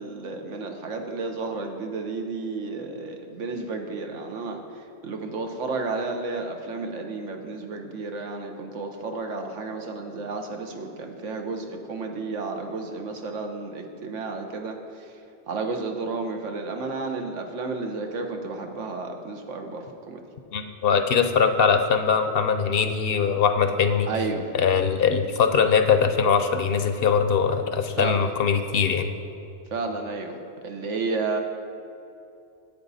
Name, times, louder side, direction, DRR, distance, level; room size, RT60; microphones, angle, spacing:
voice 1, 0.0-15.1 15.5-20.2 24.1-24.5 28.0-28.3 29.7-30.4 30.6-31.4, right 3 dB, 90° right, 4 dB, 1.3 m, -32 dB
voice 2, 20.5-24.1 24.5-29.1, left 6 dB, 60° left, 8 dB, 0.7 m, -21 dB
10.5 x 8.4 x 4.1 m, 2.7 s
omnidirectional pair, 1.2 m